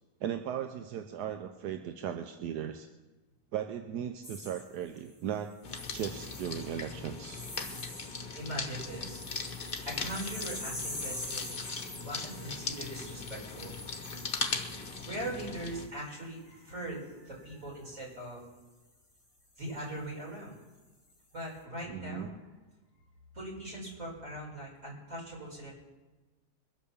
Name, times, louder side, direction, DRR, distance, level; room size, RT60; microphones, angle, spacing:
voice 1, 0.2-2.9 3.5-5.5 5.9-7.5 21.9-22.3, right 9 dB, 85° right, 7 dB, 1.3 m, -37 dB
sound 1, 4.2-5.1 5.6-6.8 7.2-8.2 8.5-15.3 15.9-16.1, left 1 dB, 15° left, 2.6 m, -44 dB
sound 2, 5.6-15.9, left 4 dB, 35° left, 1.2 m, -39 dB
voice 2, 8.4-9.2 9.9-11.5 12.0-13.8 15.0-18.5 19.6-20.6 21.3-22.4 23.3-25.7, right 1 dB, 50° right, -3 dB, 5.6 m, -40 dB
23.0 x 8.5 x 7.1 m, 1.2 s
omnidirectional pair, 1.7 m